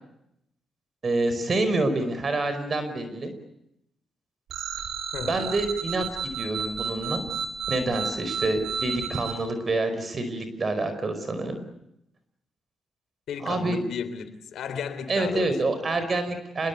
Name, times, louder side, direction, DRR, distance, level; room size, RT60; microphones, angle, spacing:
voice 1, 1.0-3.3 5.2-7.2 7.7-11.6 13.4-13.8 15.1-16.7, right 2 dB, 40° right, 9 dB, 4.9 m, -27 dB
sound 1, 4.5-9.3, right 6 dB, 80° right, 4.2 m, -32 dB
voice 2, 13.3-15.5, left 7 dB, 75° left, 10 dB, 3.6 m, -34 dB
27.0 x 21.5 x 8.4 m, 0.81 s
cardioid pair, 80°, 0 cm